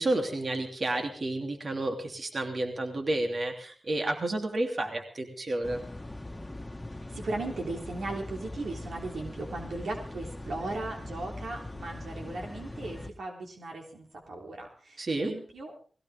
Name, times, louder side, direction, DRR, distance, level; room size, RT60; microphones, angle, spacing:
voice 1, 0.0-5.8 15.0-15.3, right 2 dB, 60° right, 3 dB, 3.2 m, -31 dB
sound 1, 5.6-13.1, left 1 dB, 25° left, 1.5 m, -41 dB
voice 2, 7.1-15.7, right 2 dB, 85° right, 1 dB, 3.4 m, -37 dB
19.5 x 17.0 x 3.7 m, 0.40 s
cardioid pair, 45°, 0 cm